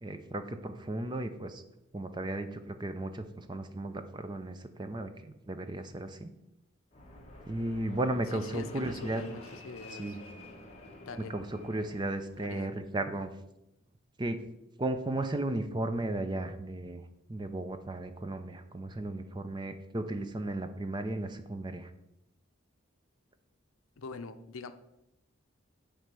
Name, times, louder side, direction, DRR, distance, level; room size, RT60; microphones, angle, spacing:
voice 1, 0.0-1.6 1.9-6.3 7.5-9.2 10.0-10.2 11.3-13.3 14.2-14.4 14.8-17.0 17.3-21.9, right 1 dB, 20° right, 9 dB, 0.5 m, -35 dB
Fixed-wing aircraft airplane, 6.9-12.5, left 1 dB, 30° left, 1.3 m, -49 dB
voice 2, 8.3-10.2 11.1-11.3 12.4-12.7 24.0-24.7, left 4 dB, 75° left, 10 dB, 0.6 m, -43 dB
9.3 x 3.3 x 6.6 m, 0.87 s
head